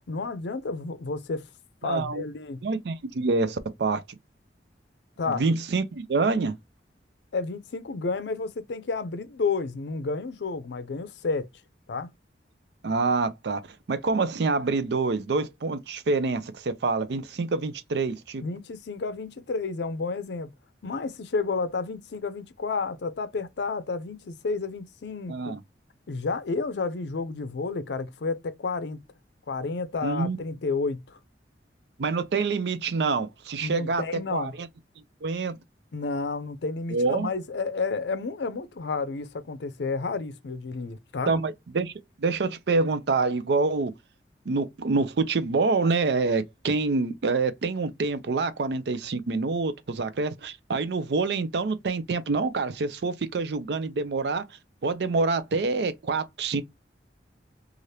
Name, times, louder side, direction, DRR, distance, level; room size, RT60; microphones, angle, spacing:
voice 1, 0.1-1.4 1.8-2.6 5.2-5.4 7.3-11.5 11.9-12.1 18.4-20.5 20.8-25.5 26.1-29.0 29.5-31.2 33.6-34.5 35.9-41.3, left 4 dB, 75° left, 0.5 m, -31 dB
voice 2, 1.8-2.2 2.6-4.0 5.3-6.5 12.8-18.4 25.3-25.6 30.0-30.4 32.0-34.7 35.2-35.6 36.9-37.3 41.3-41.9 42.2-43.9 44.5-54.5 54.8-56.6, right 3 dB, 70° right, 0.4 m, -26 dB
3.2 x 2.4 x 2.7 m
head